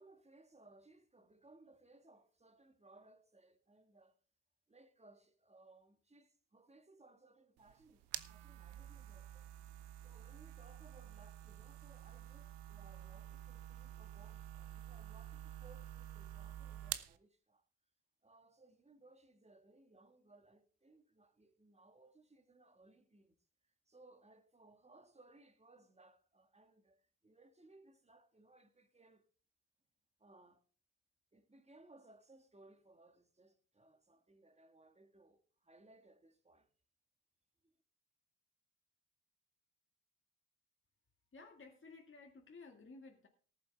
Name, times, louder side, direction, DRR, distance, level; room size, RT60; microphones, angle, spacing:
voice 1, 0.0-4.1 4.7-9.5 10.0-17.6 18.2-23.4 23.6-29.2 30.2-30.6 31.3-36.7 37.6-37.8, right 2 dB, 15° right, 1.9 m, -64 dB
sound 1, 7.6-17.2, right 13 dB, 65° right, 0.9 m, -49 dB
voice 2, 41.3-43.3, left 3 dB, 30° left, 2.1 m, -55 dB
18.5 x 7.6 x 3.5 m
hypercardioid pair, 45°, 42 cm